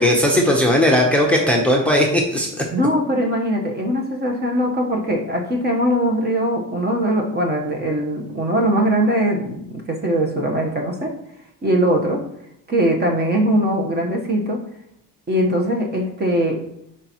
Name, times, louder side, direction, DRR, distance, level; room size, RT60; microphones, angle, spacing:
voice 1, 0.0-2.5, left 1 dB, 5° left, 0 dB, 0.9 m, -17 dB
voice 2, 2.7-11.1 11.6-12.2 12.7-14.6 15.3-16.6, equal, 30° right, 1 dB, 1.2 m, -21 dB
9.6 x 4.8 x 3.0 m, 0.78 s
cardioid pair, 130°, 35 cm